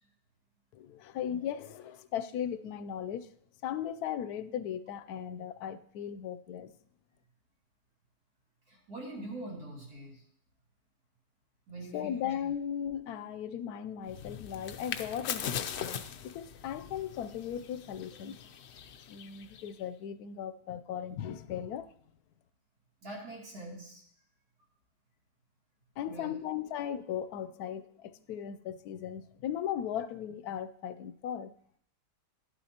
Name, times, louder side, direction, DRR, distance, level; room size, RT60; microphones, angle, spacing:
voice 1, 0.7-3.3 3.6-6.8 11.9-18.4 19.1-21.9 26.0-31.5, left 9 dB, 90° left, 12 dB, 1.1 m, -37 dB
voice 2, 8.7-10.2 11.7-12.3 23.0-24.0 26.1-26.3, right 2 dB, 85° right, -4 dB, 3.5 m, -43 dB
sound 1, 14.1-19.8, left 8 dB, 60° left, 0.7 m, -41 dB
12.0 x 12.0 x 2.9 m, 0.67 s
omnidirectional pair, 1.6 m